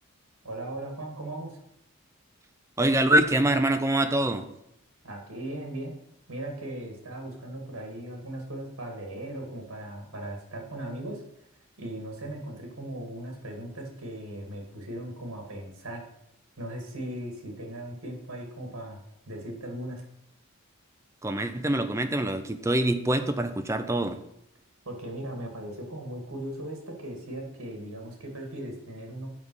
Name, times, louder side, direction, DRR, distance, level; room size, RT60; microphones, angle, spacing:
voice 1, 0.4-1.6 5.0-6.0 6.3-11.2 11.8-16.0 16.6-19.0 19.3-20.0 24.9-29.3, right 1 dB, 70° right, 2 dB, 2.3 m, -38 dB
voice 2, 2.8-4.5 21.2-24.2, right 1 dB, 15° right, 8 dB, 0.5 m, -24 dB
7.3 x 5.2 x 6.3 m, 0.79 s
head